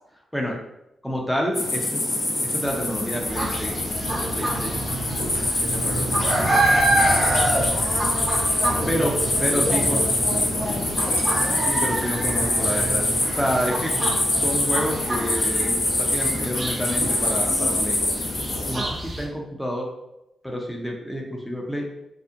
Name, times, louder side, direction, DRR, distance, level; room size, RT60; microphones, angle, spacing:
voice 1, 1.0-3.8 4.1-4.9 5.6-6.1 8.9-9.1 9.4-10.0 11.6-13.1 13.3-13.9 14.3-15.7 16.0-18.0 18.6-19.9 20.4-21.9, equal, 5° left, -1 dB, 0.5 m, -28 dB
sound 1, 1.5-18.7, left 2 dB, 75° left, 0.9 m, -25 dB
sound 2, 2.6-15.4, right 2 dB, 85° right, 0.4 m, -34 dB
sound 3, 3.3-19.3, right 1 dB, 40° right, 0.7 m, -28 dB
voice 2, 7.7-11.2, equal, 55° left, -5 dB, 0.5 m, -34 dB
2.6 x 2.0 x 2.4 m, 0.87 s
supercardioid pair, 45°, 0 cm